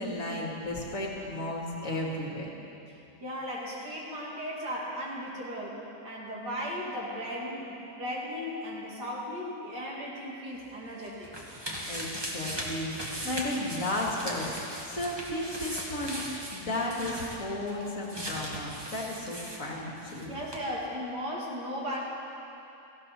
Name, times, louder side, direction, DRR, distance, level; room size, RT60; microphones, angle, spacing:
voice 1, 0.0-2.5 11.9-14.6 14.9-20.3, left 1 dB, 50° left, -2 dB, 2.2 m, -34 dB
voice 2, 3.2-11.3 20.2-22.0, equal, 80° right, -4 dB, 3.0 m, -36 dB
sound 1, 10.6-20.2 20.5-20.6, equal, 15° right, 1.6 m, -38 dB
17.5 x 15.0 x 4.3 m, 2.9 s
omnidirectional pair, 1.8 m